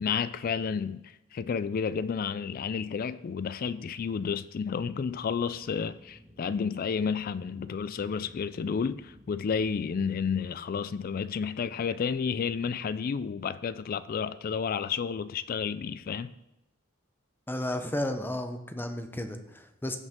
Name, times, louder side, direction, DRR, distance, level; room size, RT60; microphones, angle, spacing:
voice 1, 0.0-16.3, left 6 dB, 45° left, 0.3 m, -31 dB
sound 1, 4.7-10.4, left 1 dB, 10° right, 1.8 m, -54 dB
voice 2, 17.5-20.0, left 1 dB, 10° left, 0.7 m, -33 dB
15.5 x 5.3 x 3.6 m
head